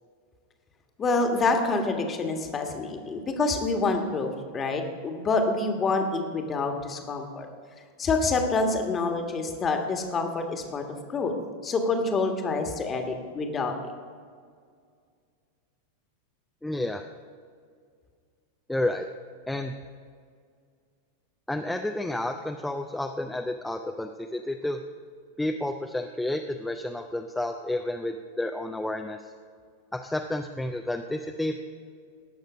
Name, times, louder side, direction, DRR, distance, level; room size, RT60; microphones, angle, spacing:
voice 1, 1.0-7.5 8.0-10.8 11.1-11.3 11.6-13.7, left 3 dB, 25° left, 4 dB, 1.5 m, -27 dB
voice 2, 16.6-17.0 18.7-19.0 19.5-19.7 21.5-24.8 25.4-29.2 30.0-31.6, left 1 dB, 5° left, 4 dB, 0.5 m, -30 dB
18.0 x 6.6 x 5.1 m, 2.1 s
figure-of-eight pair, 90°, 0 cm